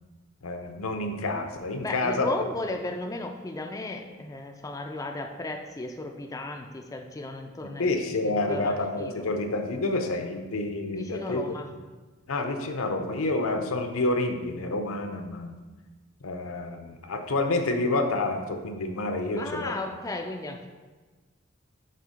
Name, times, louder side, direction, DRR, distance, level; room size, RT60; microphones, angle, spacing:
voice 1, 0.4-2.4 7.8-11.6 12.3-15.6 16.2-19.7, left 2 dB, 70° left, 6 dB, 0.7 m, -28 dB
voice 2, 1.8-8.0 8.2-9.2 10.9-11.7 19.4-20.7, left 2 dB, 15° left, 3 dB, 0.4 m, -35 dB
6.6 x 3.6 x 4.9 m, 1.3 s
head